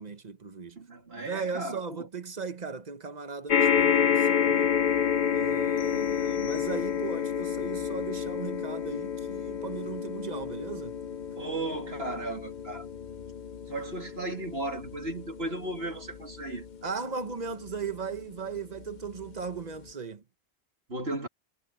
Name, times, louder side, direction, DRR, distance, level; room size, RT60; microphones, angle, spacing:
voice 1, 0.0-0.8 1.1-4.7 5.3-11.0 16.8-20.2, right 5 dB, 40° right, 1.2 m, -37 dB
voice 2, 0.8-2.1 11.4-12.9 13.7-16.6 20.9-21.3, right 2 dB, 65° right, 3.4 m, -35 dB
sound 1, 3.5-18.0 18.8-18.9 19.2-19.3, left 8 dB, 50° left, 0.7 m, -29 dB
sound 2, 5.8-7.3, left 14 dB, 85° left, 6.5 m, -51 dB
omnidirectional pair, 1.1 m